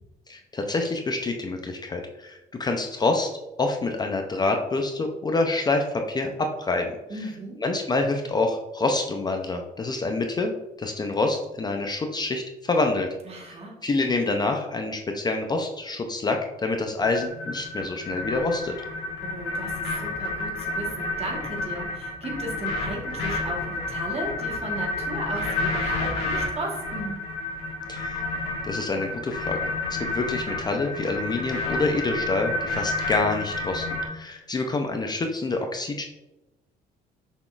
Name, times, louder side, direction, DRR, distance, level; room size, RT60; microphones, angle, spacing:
voice 1, 0.3-6.9 7.6-13.1 13.8-18.8 27.9-28.2 28.6-33.9 34.1-36.0, left 3 dB, 25° left, 3 dB, 0.5 m, -27 dB
voice 2, 7.1-7.6 13.2-13.8 19.2-27.2, right 2 dB, 35° right, 0 dB, 1.3 m, -35 dB
sound 1, 17.0-34.1, left 2 dB, 90° left, 1.2 m, -30 dB
6.0 x 3.5 x 2.4 m, 1.0 s
cardioid pair, 110°, 17 cm